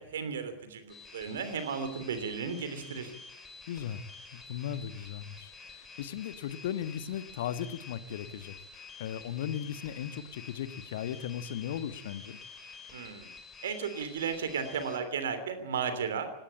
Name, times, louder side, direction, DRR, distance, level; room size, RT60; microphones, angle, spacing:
voice 1, 0.0-3.1 12.9-13.3 13.6-16.3, right 6 dB, 60° right, 10 dB, 2.9 m, -34 dB
sound 1, 0.9-15.0, left 4 dB, 20° left, 5.2 m, -49 dB
voice 2, 3.7-4.0 4.3-12.4, left 9 dB, 55° left, 13 dB, 1.3 m, -37 dB
18.5 x 18.0 x 8.7 m, 0.81 s
figure-of-eight pair, 90°, 0 cm